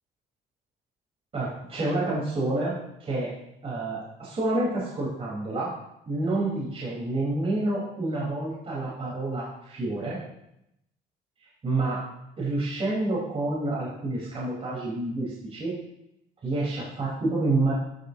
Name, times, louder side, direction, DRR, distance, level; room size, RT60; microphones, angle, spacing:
voice 1, 1.3-2.7 3.0-3.3 3.6-5.7 6.1-10.2 11.6-12.0 12.4-15.7 16.4-17.7, right 2 dB, 35° right, -6 dB, 4.4 m, -28 dB
12.5 x 12.5 x 2.9 m, 0.83 s
cardioid pair, 110°, 17 cm